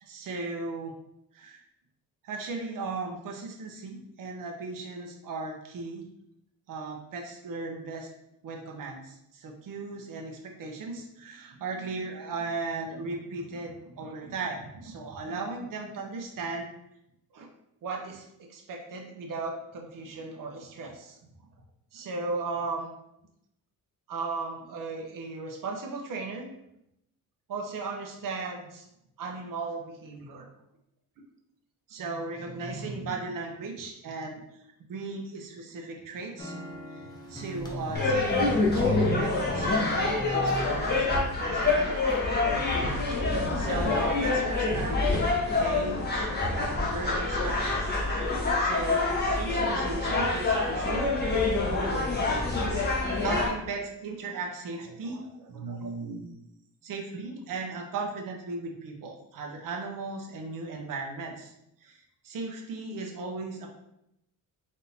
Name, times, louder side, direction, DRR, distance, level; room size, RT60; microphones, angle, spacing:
voice 1, 0.0-0.9 1.3-1.6 2.2-6.0 6.7-8.1 8.4-16.7 17.3-17.5 17.8-21.2 21.9-22.9 24.1-26.5 27.5-28.9 29.2-30.5 31.9-34.4 34.9-36.6 37.0-41.0 41.4-42.0 43.1-45.3 45.6-47.8 48.2-51.1 51.5-52.4 53.2-56.3 56.8-61.5 61.8-63.7, right 3 dB, 60° right, 1 dB, 0.8 m, -37 dB
sound 1, 36.4-42.7, equal, 10° left, 0.7 m, -37 dB
sound 2, 37.9-53.5, left 3 dB, 25° left, 1.2 m, -26 dB
4.1 x 3.6 x 2.7 m, 0.81 s
cardioid pair, 120°, 36 cm